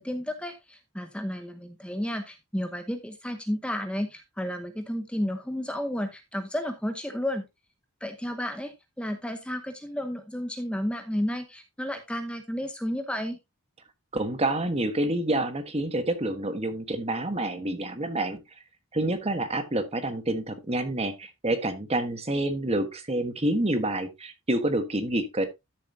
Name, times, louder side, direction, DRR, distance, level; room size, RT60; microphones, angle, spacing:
voice 1, 0.0-7.4 8.0-13.4, equal, 5° left, 0.9 m, -32 dB
voice 2, 14.1-18.4 18.9-25.4, right 1 dB, 30° right, 1.3 m, -28 dB
12.5 x 7.1 x 2.8 m
head